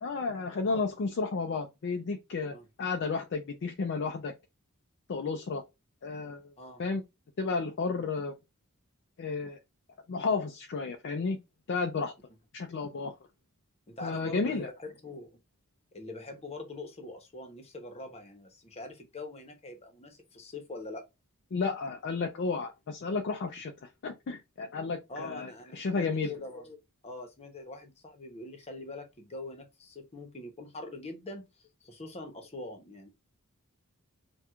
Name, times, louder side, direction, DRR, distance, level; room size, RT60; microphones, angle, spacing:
voice 1, 0.0-4.3 5.1-5.6 6.0-6.4 6.8-7.0 7.4-8.3 9.2-9.6 10.1-11.4 11.7-12.1 12.5-13.1 14.0-14.7 21.5-23.7 24.0-26.3, left 4 dB, 50° left, 0.4 m, -32 dB
voice 2, 13.9-15.3 15.9-21.0 25.1-33.1, left 2 dB, 30° left, 0.8 m, -43 dB
4.3 x 2.3 x 2.3 m
head